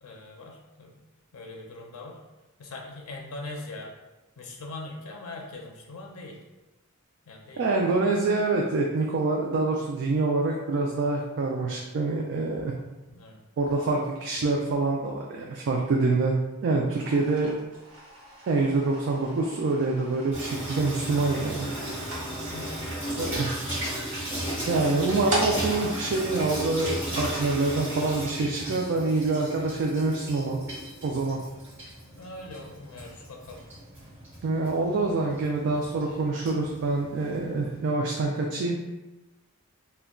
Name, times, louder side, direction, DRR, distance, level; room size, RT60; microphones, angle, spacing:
voice 1, 0.0-1.0 1.3-2.2 2.6-3.9 4.4-6.4 7.3-7.9 13.1-13.4 22.5-22.8 24.5-24.7 32.2-33.6 36.0-36.2, left 2 dB, 85° left, 0 dB, 0.5 m, -41 dB
voice 2, 7.6-12.7 13.6-16.3 16.6-17.6 18.5-21.8 23.2-23.5 24.7-30.6 31.0-31.4 34.4-38.8, right 3 dB, 55° right, -1 dB, 0.3 m, -26 dB
sound 1, 16.8-27.2, right 1 dB, 75° right, 0.9 m, -40 dB
Water tap faucet / Sink (filling or washing), 20.3-37.8, equal, 10° right, 1.2 m, -35 dB
2.2 x 2.2 x 3.6 m, 1.1 s
head